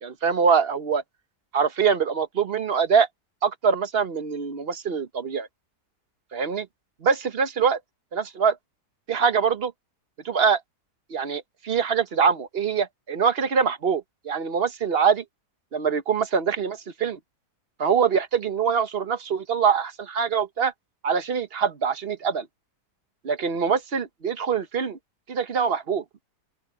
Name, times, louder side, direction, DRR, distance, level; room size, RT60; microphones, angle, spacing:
voice 1, 0.0-1.0 1.5-3.1 3.4-5.5 6.3-6.7 7.0-7.8 8.1-8.5 9.1-9.7 10.2-10.6 11.1-15.2 15.7-17.2 17.8-20.7 21.0-22.5 23.2-25.0 25.3-26.0, right 6 dB, 40° right, 1.1 m, -24 dB
open air
omnidirectional pair, 1.7 m